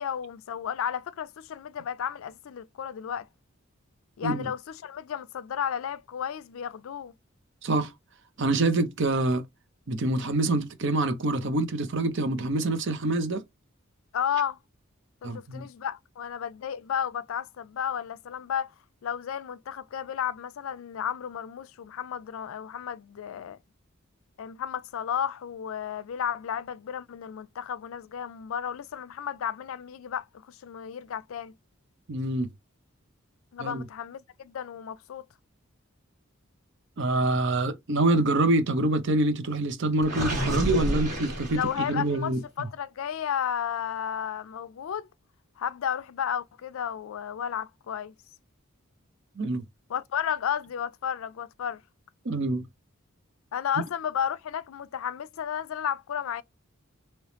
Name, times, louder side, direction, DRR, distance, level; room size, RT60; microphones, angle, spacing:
voice 1, 0.0-3.3 4.2-7.1 14.1-14.6 15.2-18.7 19.0-23.6 24.4-31.5 33.5-35.2 41.5-45.1 45.6-48.1 49.9-51.8 53.5-56.4, left 8 dB, 75° left, 0.4 m, -33 dB
voice 2, 8.4-9.4 9.9-13.4 15.2-15.7 32.1-32.5 33.6-33.8 37.0-42.4 49.4-49.6 52.2-52.6, right 2 dB, 60° right, 0.7 m, -26 dB
Gurgling, 40.0-42.2, equal, 35° right, 2.0 m, -30 dB
3.2 x 3.0 x 2.9 m
head